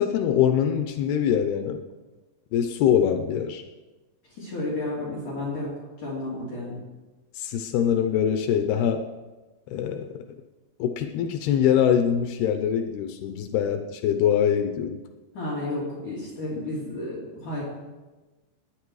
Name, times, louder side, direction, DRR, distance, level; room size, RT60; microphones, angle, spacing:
voice 1, 0.0-1.8 2.5-3.6 7.4-9.1 9.7-10.1 10.8-15.0, left 9 dB, 85° left, 7 dB, 2.2 m, -23 dB
voice 2, 4.4-5.7 6.0-6.8 15.3-17.6, left 2 dB, 45° left, -7 dB, 4.1 m, -32 dB
21.0 x 9.4 x 4.8 m, 1.2 s
omnidirectional pair, 5.5 m